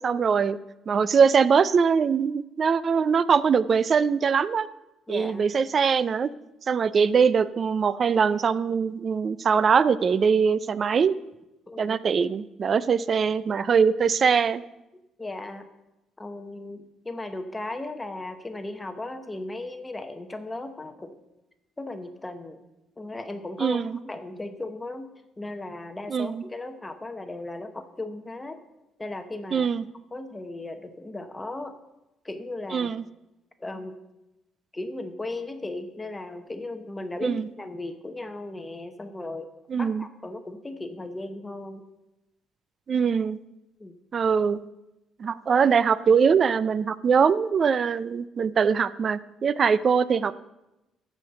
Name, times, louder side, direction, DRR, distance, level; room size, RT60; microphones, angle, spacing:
voice 1, 0.0-0.6 0.9-4.7 5.1-6.3 6.7-11.1 11.8-14.6 23.6-24.0 26.1-26.4 29.5-29.9 32.7-33.0 37.2-37.5 39.7-40.1 42.9-43.4 44.1-44.6 45.2-50.3, right 6 dB, 40° right, 17 dB, 0.4 m, -22 dB
voice 2, 5.1-5.5 11.7-12.0 15.2-15.6 16.2-21.2 21.8-22.6 23.0-25.1 25.4-28.6 29.0-29.7 30.1-31.7 32.2-32.9 33.6-34.0 34.7-39.5 39.8-41.8 43.8-44.0, left 2 dB, 15° left, 7 dB, 0.8 m, -36 dB
14.0 x 5.2 x 6.8 m, 0.95 s
cardioid pair, 120°, 0 cm